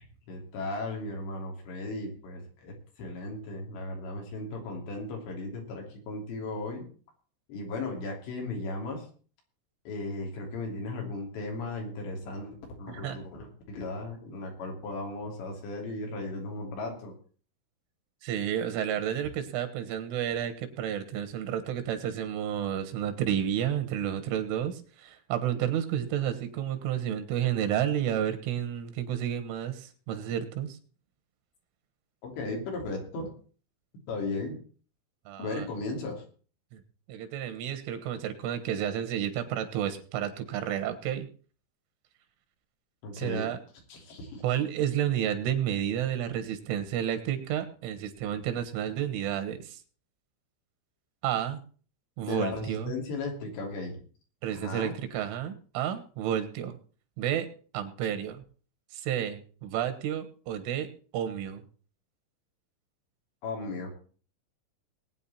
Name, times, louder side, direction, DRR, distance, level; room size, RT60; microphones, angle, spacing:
voice 1, 0.3-6.9 7.5-9.1 9.8-17.2 32.2-33.3 34.1-34.6 35.4-36.2 43.0-43.5 43.9-44.4 52.2-54.0 54.5-54.9 63.4-63.9, left 2 dB, 65° left, 1 dB, 5.1 m, -36 dB
voice 2, 12.9-13.2 18.2-30.8 35.3-35.7 36.7-36.8 37.1-41.3 43.1-43.6 44.4-49.8 51.2-51.6 52.2-52.9 54.4-56.8 57.2-57.5 57.7-58.4 58.9-61.6, right 10 dB, 85° right, 8 dB, 3.9 m, -31 dB
20.5 x 9.1 x 4.3 m, 0.41 s
omnidirectional pair, 5.5 m